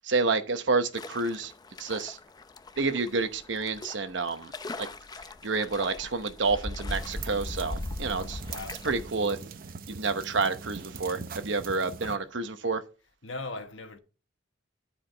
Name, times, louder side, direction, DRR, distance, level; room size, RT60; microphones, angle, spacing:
voice 1, 0.0-1.5 1.8-2.2 2.8-4.5 4.8-4.9 5.4-8.4 8.8-9.4 9.9-12.8, right 4 dB, 70° right, 1.0 m, -29 dB
sound 1, 0.9-9.1, left 2 dB, 20° left, 0.5 m, -40 dB
sound 2, 6.9-12.2, right 5 dB, 50° right, 0.6 m, -42 dB
voice 2, 8.5-8.8 12.0-12.3 13.2-14.0, left 3 dB, 85° left, 1.5 m, -39 dB
13.0 x 4.9 x 3.5 m
head